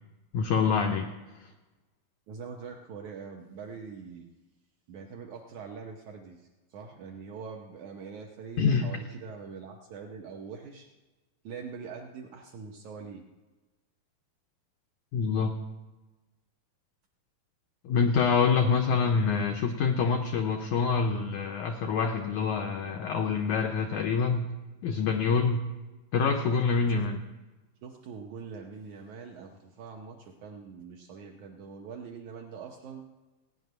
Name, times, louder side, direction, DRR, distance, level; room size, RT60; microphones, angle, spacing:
voice 1, 0.3-1.1 1.4-1.5 8.6-9.0 15.1-15.5 17.8-24.5 24.8-25.7 26.1-27.2, left 5 dB, 90° left, 5 dB, 1.7 m, -26 dB
voice 2, 2.3-4.3 4.9-10.9 11.4-13.2 26.9-27.0 27.8-33.0, right 5 dB, 75° right, 1 dB, 1.7 m, -43 dB
17.0 x 5.9 x 9.3 m, 1.2 s
omnidirectional pair, 4.4 m